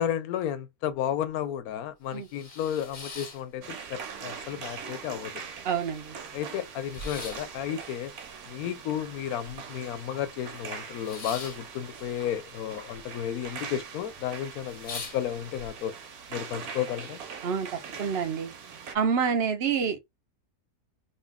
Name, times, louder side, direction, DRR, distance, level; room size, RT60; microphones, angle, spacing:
voice 1, 0.0-5.4 6.3-8.1 8.5-16.0 16.3-17.2, left 10 dB, 75° left, 1.1 m, -33 dB
sound 1, 0.9-1.0 1.4-1.5 1.9-4.1 4.4-5.2 5.5-5.6 5.8-9.9 10.2-13.0 13.3-13.8 14.2-14.3 14.6-15.7, left 3 dB, 35° left, 0.8 m, -43 dB
sound 2, 3.6-19.0, right 6 dB, 70° right, 1.4 m, -42 dB
voice 2, 5.6-6.1 17.4-17.7 18.0-18.5 18.9-20.0, right 6 dB, 45° right, 1.0 m, -27 dB
3.9 x 2.4 x 3.5 m
omnidirectional pair, 1.7 m